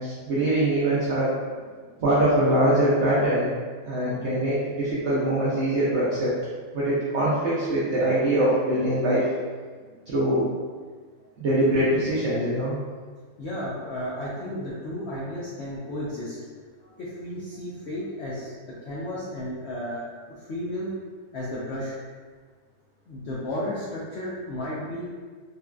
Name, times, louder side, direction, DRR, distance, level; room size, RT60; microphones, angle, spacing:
voice 1, 0.0-1.3 2.0-3.5 3.9-6.3 6.7-9.3 10.1-10.5 11.4-12.8, right 1 dB, 65° right, -8 dB, 0.7 m, -23 dB
voice 2, 9.8-10.1 11.2-11.3 13.4-16.4 16.8-18.5 18.8-20.9 21.3-21.9 23.1-25.1, left 1 dB, 75° left, -7 dB, 0.6 m, -33 dB
3.8 x 2.2 x 2.4 m, 1.5 s
omnidirectional pair, 1.7 m